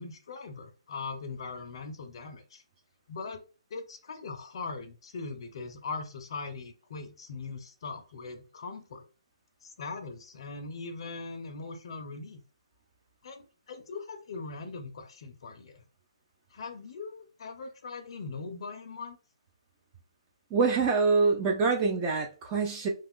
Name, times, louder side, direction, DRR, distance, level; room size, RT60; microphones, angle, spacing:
voice 1, 0.0-2.6 3.1-3.4 3.7-9.0 9.6-12.4 13.2-15.8 16.5-19.2, left 4 dB, 50° left, 5 dB, 0.5 m, -40 dB
voice 2, 20.5-22.9, right 4 dB, 20° right, 1 dB, 0.4 m, -25 dB
2.4 x 2.3 x 3.6 m, 0.35 s
hypercardioid pair, 155°, 3 cm